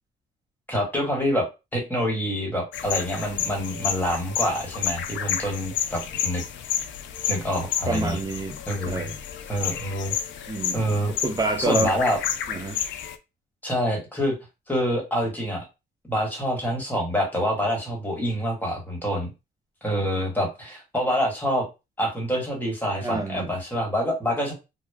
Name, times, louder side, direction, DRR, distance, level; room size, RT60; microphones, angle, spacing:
voice 1, 0.7-1.5 1.7-6.4 7.3-8.2 8.7-9.0 9.5-10.1 10.7-11.1 11.7-12.2 13.6-14.3 14.7-15.6 16.0-19.3 19.8-21.6 22.0-24.5, equal, 10° left, 1.3 m, -26 dB
sound 1, 2.7-13.2, left 9 dB, 70° left, 0.4 m, -30 dB
voice 2, 7.9-9.2 10.5-11.9 12.5-12.8 23.0-23.5, right 2 dB, 20° right, 0.6 m, -28 dB
2.9 x 2.1 x 2.2 m
cardioid pair, 90°, 20 cm